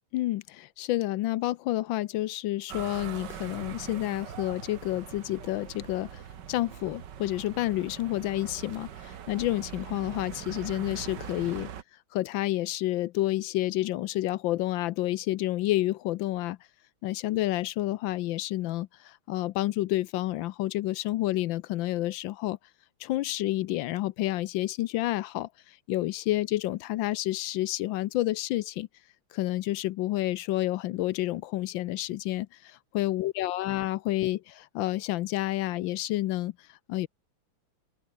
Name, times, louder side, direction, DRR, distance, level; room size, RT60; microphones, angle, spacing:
voice 1, 0.1-6.2 6.5-11.7 12.1-16.6 17.0-22.6 23.0-28.9 29.3-37.1, left 16 dB, 85° left, 1.4 m, -29 dB
sound 1, 2.7-11.8, right 9 dB, 65° right, 1.9 m, -42 dB
open air
omnidirectional pair, 2.1 m